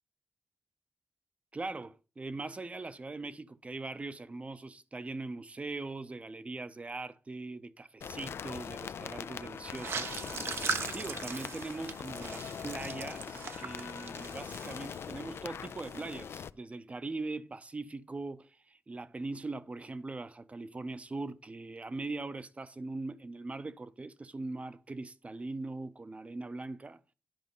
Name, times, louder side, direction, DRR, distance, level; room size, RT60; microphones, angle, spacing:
voice 1, 1.5-27.0, right 3 dB, 30° right, 0.6 m, -41 dB
sound 1, 8.0-16.5, left 7 dB, 75° left, 0.4 m, -42 dB
sound 2, 9.7-15.4 15.6-16.0, right 5 dB, 75° right, 0.9 m, -39 dB
10.5 x 5.1 x 5.4 m
cardioid pair, 80°, 4 cm